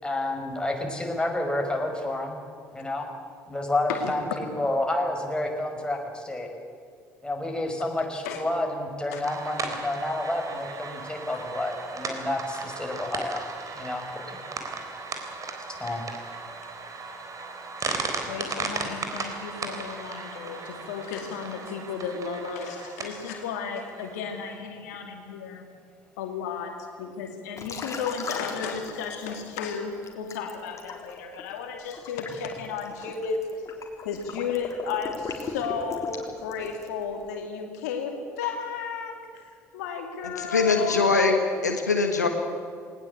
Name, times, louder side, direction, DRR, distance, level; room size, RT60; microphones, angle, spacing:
voice 1, 0.0-2.4 2.7-3.1 3.5-6.5 7.2-13.5 13.7-14.4 15.8-16.0, left 1 dB, 10° left, 2 dB, 5.5 m, -29 dB
sound 1, 9.2-24.6, right 4 dB, 40° right, 3.8 m, -36 dB
voice 2, 17.8-25.7 26.2-33.4 34.0-41.1, left 6 dB, 75° left, 4 dB, 2.3 m, -34 dB
Liquid, 27.6-29.6 30.0-37.0, left 5 dB, 35° left, 3.7 m, -38 dB
voice 3, 40.4-42.3, left 4 dB, 90° left, 4 dB, 1.5 m, -22 dB
19.5 x 19.5 x 8.5 m, 2.4 s
figure-of-eight pair, 55°, 9 cm